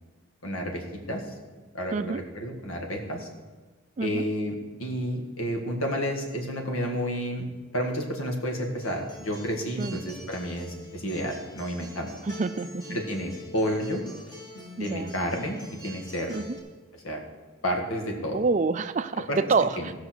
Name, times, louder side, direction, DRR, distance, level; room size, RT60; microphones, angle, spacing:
voice 1, 0.4-1.2 1.7-3.3 4.0-7.5 7.7-12.1 12.9-14.0 14.8-16.3 16.9-17.2 17.6-18.4 19.3-19.4 19.8-19.9, equal, 85° left, 2 dB, 1.9 m, -30 dB
Acoustic guitar, 8.6-16.6, left 1 dB, 20° left, 2.0 m, -45 dB
voice 2, 12.3-13.0 14.8-15.1 16.3-16.6 18.3-19.9, right 4 dB, 35° right, 12 dB, 0.4 m, -27 dB
15.5 x 5.6 x 6.2 m, 1.4 s
head